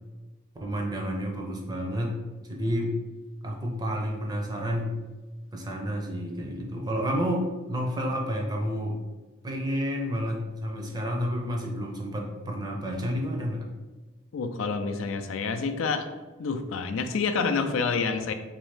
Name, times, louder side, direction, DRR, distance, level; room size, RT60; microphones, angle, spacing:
voice 1, 0.6-2.2 2.5-3.0 3.4-5.0 5.5-9.0 9.4-13.7, equal, 20° right, 0 dB, 0.5 m, -30 dB
voice 2, 14.3-16.0 16.4-18.3, left 5 dB, 80° left, 7 dB, 0.4 m, -28 dB
3.8 x 2.7 x 3.2 m, 1.2 s
head